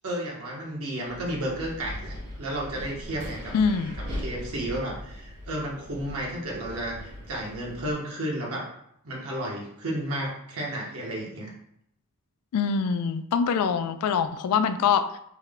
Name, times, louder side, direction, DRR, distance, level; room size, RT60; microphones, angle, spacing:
voice 1, 0.0-3.5 4.2-8.7 9.0-11.5, right 1 dB, 65° right, -2 dB, 0.9 m, -32 dB
Wind, 1.1-7.9, left 1 dB, 90° right, 1.2 m, -39 dB
voice 2, 3.5-4.0 12.5-15.2, left 6 dB, 80° left, 10 dB, 0.3 m, -24 dB
3.4 x 2.1 x 3.5 m, 0.72 s
head